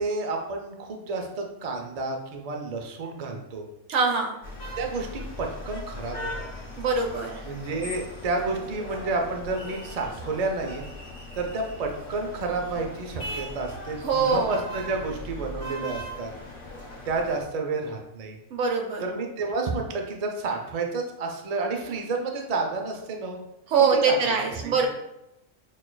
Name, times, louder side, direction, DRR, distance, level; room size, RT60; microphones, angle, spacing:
voice 1, 0.0-3.6 4.8-6.5 7.4-10.8 11.3-16.3 17.0-18.4 19.0-23.4 24.0-24.3 24.6-24.9, right 3 dB, 55° right, 2 dB, 0.4 m, -30 dB
voice 2, 3.9-4.3 6.8-7.4 14.0-14.5 18.5-19.0 23.7-24.9, right 5 dB, 75° right, 2 dB, 1.0 m, -23 dB
sound 1, 4.4-17.4, left 1 dB, 85° left, 1.4 m, -39 dB
6.3 x 2.3 x 2.2 m, 0.87 s
omnidirectional pair, 1.3 m